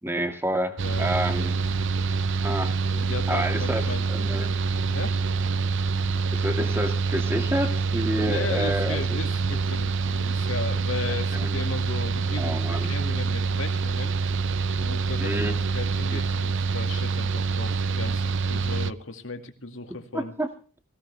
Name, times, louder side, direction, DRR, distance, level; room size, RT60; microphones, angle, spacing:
voice 1, 0.0-1.6 2.4-2.7 3.3-4.6 6.3-9.2 11.3-11.5 12.4-12.9 15.2-15.6 16.1-16.2 20.1-20.5, equal, 10° right, 6 dB, 2.1 m, -29 dB
sound 1, 0.8-6.2, equal, 35° right, 3.0 m, -43 dB
Mechanical fan, 0.8-18.9, right 4 dB, 60° right, 0.6 m, -26 dB
voice 2, 2.9-4.5 4.9-5.2 8.2-14.1 14.8-20.3, left 3 dB, 70° left, 5 dB, 2.3 m, -36 dB
20.0 x 16.5 x 3.4 m, 0.39 s
head